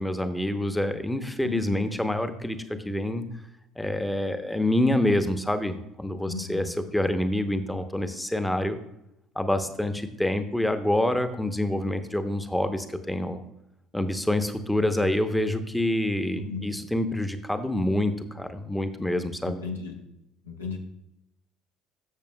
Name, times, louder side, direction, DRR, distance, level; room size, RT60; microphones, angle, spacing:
voice 1, 0.0-3.3 3.8-8.8 9.4-13.4 13.9-19.6, left 1 dB, 5° left, 10 dB, 0.8 m, -27 dB
voice 2, 1.4-1.9 6.2-6.7 16.3-16.7 19.4-20.0 20.5-20.8, left 4 dB, 80° left, 1 dB, 1.0 m, -35 dB
13.0 x 6.9 x 2.2 m, 0.84 s
figure-of-eight pair, 60°, 0 cm